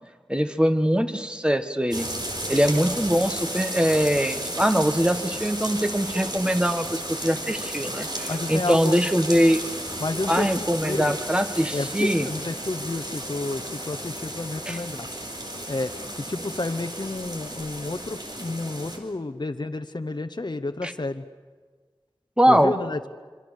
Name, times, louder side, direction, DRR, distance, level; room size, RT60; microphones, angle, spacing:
voice 1, 0.3-2.1 2.5-9.6 10.3-12.3 14.7-14.8 20.8-20.9 22.4-22.7, equal, 10° right, 8 dB, 1.5 m, -22 dB
sound 1, 1.9-19.0, right 1 dB, 50° right, 4.3 m, -33 dB
voice 2, 8.3-8.9 10.0-11.1 11.7-15.1 15.5-21.2 22.5-23.1, left 2 dB, 50° left, 7 dB, 0.9 m, -30 dB
26.0 x 25.5 x 6.5 m, 1.5 s
wide cardioid pair, 50°, 9 cm